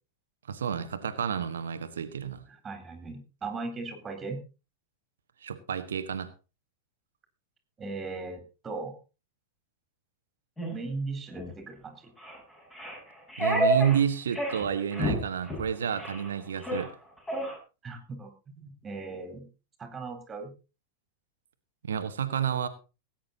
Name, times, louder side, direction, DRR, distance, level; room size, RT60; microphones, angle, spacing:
voice 1, 0.5-2.4 5.4-6.3 13.4-16.9 21.8-22.7, right 8 dB, 65° right, 10 dB, 1.3 m, -30 dB
voice 2, 2.5-4.4 7.8-9.0 10.7-12.1 17.8-19.5 19.8-20.5, right 3 dB, 20° right, 7 dB, 4.0 m, -38 dB
sound 1, 10.6-10.7 11.3-11.5 12.2-12.4 12.7-14.0 14.3-14.7 14.9-15.2 15.4-15.6 16.0-16.3 16.6-16.9 17.3-17.6, right 1 dB, 10° left, 6.1 m, -29 dB
18.5 x 9.3 x 4.0 m, 0.32 s
figure-of-eight pair, 90°, 0 cm